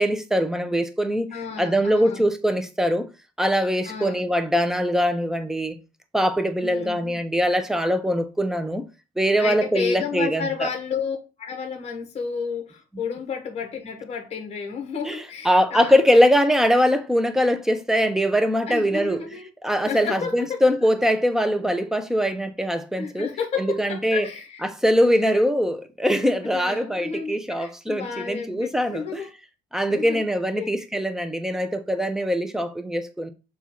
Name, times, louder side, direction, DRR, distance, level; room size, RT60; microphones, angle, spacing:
voice 1, 0.0-1.3 1.6-3.0 3.4-5.8 6.1-8.8 9.2-10.7 15.0-19.2 19.6-23.3 23.6-24.3 24.6-29.2 29.7-33.3, equal, 5° right, 0.9 m, -22 dB
voice 2, 1.3-2.3 3.9-4.3 6.6-7.2 9.4-16.0 18.7-19.5 19.8-20.6 23.0-24.7 25.0-25.3 26.5-29.3 29.9-30.3 30.6-30.7, left 6 dB, 40° left, 1.8 m, -32 dB
7.1 x 2.7 x 5.9 m
cardioid pair, 110°, 17 cm